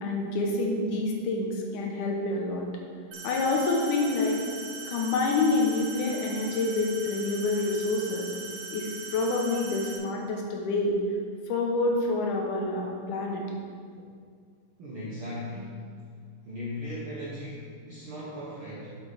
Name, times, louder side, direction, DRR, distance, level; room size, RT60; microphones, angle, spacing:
voice 1, 0.0-2.7 3.2-4.4 4.9-8.3 8.7-11.0 11.5-13.4, left 3 dB, 75° left, 0 dB, 2.3 m, -27 dB
sound 1, 3.1-10.0, right 4 dB, 85° right, 1.3 m, -40 dB
voice 2, 14.8-15.9 16.4-19.0, left 1 dB, 65° right, -6 dB, 1.3 m, -37 dB
8.2 x 7.9 x 3.4 m, 2.1 s
omnidirectional pair, 3.8 m